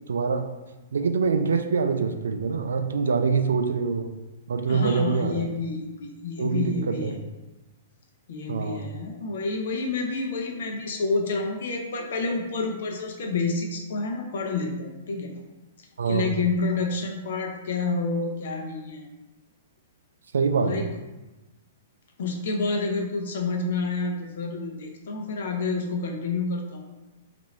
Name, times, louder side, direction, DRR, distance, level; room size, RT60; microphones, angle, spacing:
voice 1, 0.1-0.4 0.9-4.1 4.5-5.5 6.4-7.2 8.5-8.8 16.0-16.3 20.3-20.9, right 5 dB, 65° right, 6 dB, 0.3 m, -25 dB
voice 2, 4.7-7.2 8.3-15.3 16.0-19.0 20.6-20.9 22.2-26.9, left 3 dB, 55° left, 2 dB, 0.6 m, -29 dB
2.8 x 2.5 x 4.2 m, 1.1 s
figure-of-eight pair, 110°, 0 cm